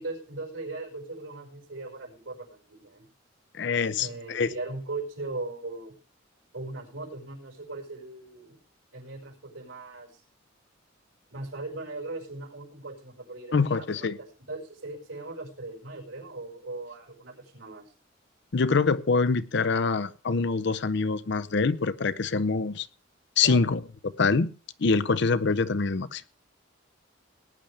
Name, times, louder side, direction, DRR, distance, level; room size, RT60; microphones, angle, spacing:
voice 1, 0.0-3.1 4.0-5.9 6.5-8.6 8.9-10.2 11.3-17.9 23.4-23.7, right 2 dB, 80° right, 5.0 m, -39 dB
voice 2, 3.5-4.5 13.5-14.2 18.5-22.9 23.4-24.5 24.8-26.2, left 4 dB, 60° left, 0.6 m, -25 dB
18.5 x 10.0 x 3.4 m
head